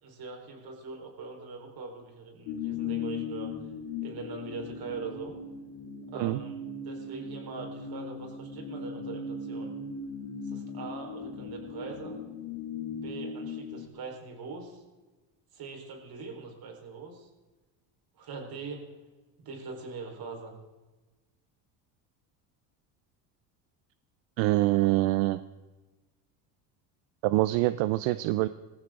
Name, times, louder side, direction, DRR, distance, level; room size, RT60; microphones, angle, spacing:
voice 1, 0.0-3.5 4.0-5.3 6.1-9.8 10.4-12.2 12.9-14.8 15.5-17.3 18.2-18.9 19.4-20.6, right 4 dB, 50° right, 2 dB, 4.5 m, -42 dB
sound 1, 2.5-13.9, left 4 dB, 75° left, 2.8 m, -38 dB
voice 2, 24.4-25.4 27.2-28.5, right 18 dB, 75° right, 14 dB, 0.7 m, -25 dB
20.0 x 15.0 x 3.8 m, 1.2 s
supercardioid pair, 105°, 47 cm